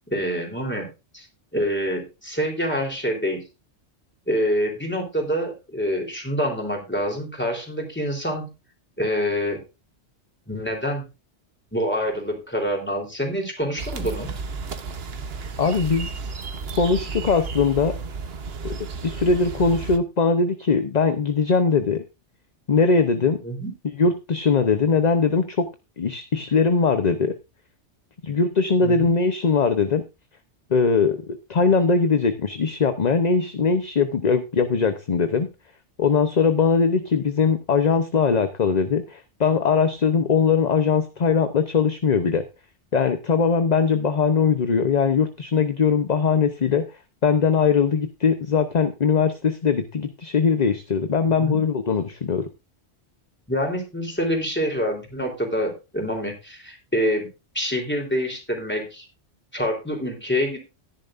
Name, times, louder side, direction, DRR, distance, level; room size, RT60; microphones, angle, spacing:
voice 1, 0.1-1.3 1.5-3.4 4.3-8.5 9.0-9.6 10.5-11.1 11.7-14.3 23.4-23.7 28.8-29.1 51.4-51.6 53.5-57.3 57.5-59.1 59.5-60.6, equal, 10° left, 2 dB, 3.5 m, -26 dB
sound 1, 13.8-20.0, right 4 dB, 60° right, 1.2 m, -33 dB
voice 2, 15.6-16.1 16.7-17.9 18.6-18.8 19.0-22.0 22.7-23.4 24.0-25.7 26.0-27.3 28.2-30.0 30.7-35.5 36.0-42.4 42.9-46.8 47.2-52.5, left 5 dB, 40° left, 8 dB, 0.8 m, -21 dB
14.5 x 10.5 x 2.5 m, 0.27 s
omnidirectional pair, 1.2 m